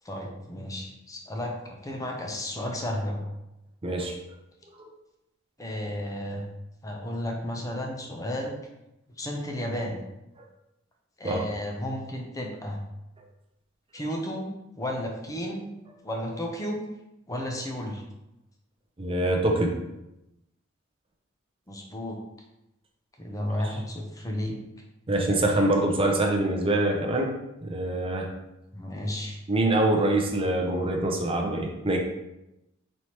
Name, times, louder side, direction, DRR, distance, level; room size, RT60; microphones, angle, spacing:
voice 1, 0.0-3.2 5.6-6.5 6.8-8.6 9.1-10.0 11.2-12.8 13.9-14.5 14.8-16.8 17.3-18.0 21.7-22.2 23.2-24.6 28.7-29.4, left 1 dB, 15° left, 1 dB, 0.6 m, -33 dB
voice 2, 3.8-4.1 11.2-11.4 19.0-19.7 25.1-27.3 27.6-28.3 29.5-32.0, right 1 dB, 25° right, 1 dB, 0.6 m, -24 dB
4.2 x 3.3 x 2.9 m, 0.90 s
head